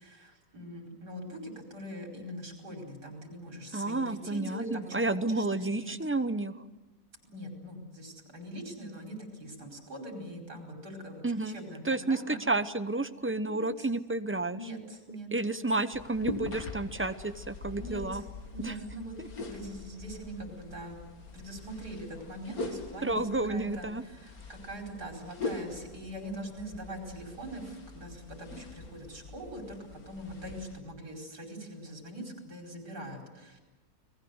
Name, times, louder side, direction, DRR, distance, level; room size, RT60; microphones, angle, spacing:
voice 1, 0.0-5.1 5.4-6.0 7.3-12.4 13.4-13.9 14.5-15.3 15.6-15.7 17.8-18.2 18.5-19.1 19.4-21.0 21.3-23.9 24.1-29.8 30.1-33.6, right 1 dB, 85° right, 3 dB, 5.5 m, -42 dB
voice 2, 3.7-6.5 11.2-11.6 11.8-14.7 15.3-18.2 18.6-18.8 19.2-19.3 23.0-24.0, right 2 dB, 10° right, 11 dB, 0.6 m, -31 dB
sound 1, 15.9-30.8, left 3 dB, 65° left, 2.7 m, -43 dB
29.5 x 20.5 x 8.0 m, 1.0 s
omnidirectional pair, 1.7 m